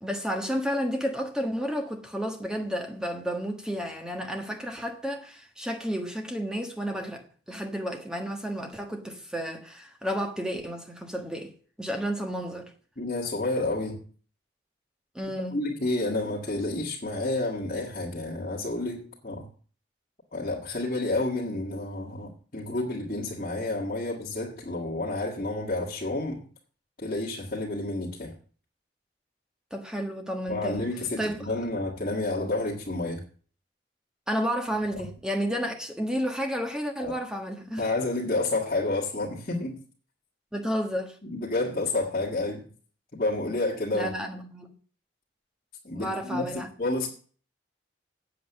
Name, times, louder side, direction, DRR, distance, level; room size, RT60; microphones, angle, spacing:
voice 1, 0.0-11.5 11.8-12.7 15.1-15.6 29.7-30.9 31.2-31.6 34.3-37.8 40.5-41.2 43.9-44.7 45.9-46.7, equal, 5° right, 1.4 m, -31 dB
voice 2, 13.0-14.1 15.5-19.5 20.3-26.5 27.0-28.4 30.5-33.2 34.9-35.1 37.0-37.1 37.8-39.8 41.2-42.7 43.1-44.1 45.8-47.1, left 2 dB, 45° left, 1.9 m, -30 dB
8.5 x 7.7 x 7.1 m
head